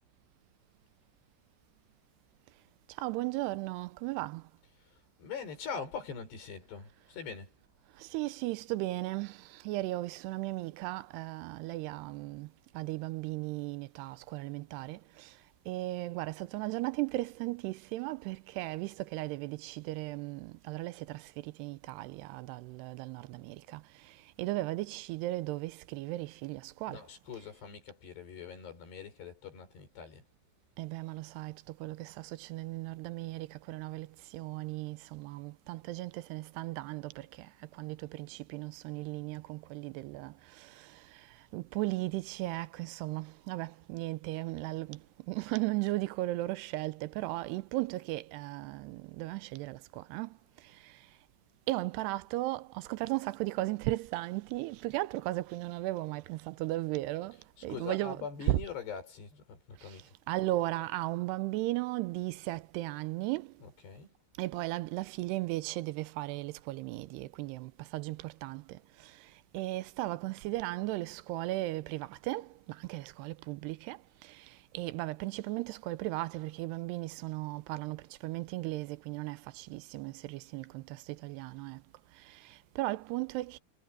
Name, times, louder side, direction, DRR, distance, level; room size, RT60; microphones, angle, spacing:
voice 1, 3.0-4.4 8.0-12.5 12.7-15.3 15.7-23.8 24.4-27.0 30.8-41.0 41.5-45.0 45.3-50.3 51.7-57.4 57.6-58.2 58.5-58.6 59.8-59.9 60.3-63.5 64.4-68.8 69.5-74.5 74.7-81.8 82.3-83.6, right 19 dB, 85° right, 2.8 m, -36 dB
voice 2, 5.2-7.5 26.9-30.2 57.3-60.1 63.6-64.1, left 6 dB, 80° left, 7.6 m, -43 dB
omnidirectional pair, 4.7 m